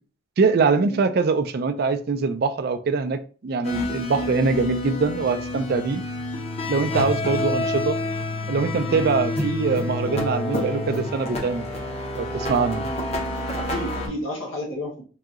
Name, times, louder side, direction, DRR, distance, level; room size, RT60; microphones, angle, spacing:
voice 1, 0.4-6.0 6.7-8.0 8.5-11.7 12.2-12.9, right 4 dB, 50° right, 0.3 m, -23 dB
sound 1, 3.6-14.1, left 1 dB, 30° left, 0.7 m, -28 dB
voice 2, 13.5-15.0, equal, 90° left, 1.0 m, -32 dB
4.8 x 2.7 x 2.4 m
head